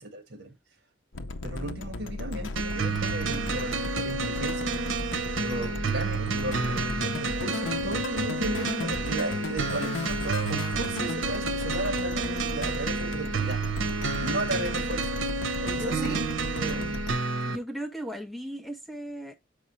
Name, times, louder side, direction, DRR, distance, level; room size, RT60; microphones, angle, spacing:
voice 1, 0.1-0.5 1.4-4.7 5.3-13.9 14.2-15.1 15.6-17.0, right 1 dB, 55° right, 1.7 m, -35 dB
sound 1, 1.1-17.2, left 3 dB, 75° left, 0.6 m, -36 dB
sound 2, 2.6-17.6, right 3 dB, 80° right, 0.9 m, -30 dB
voice 2, 15.7-16.2 17.5-19.3, right 1 dB, ahead, 0.4 m, -37 dB
6.3 x 4.9 x 3.0 m
head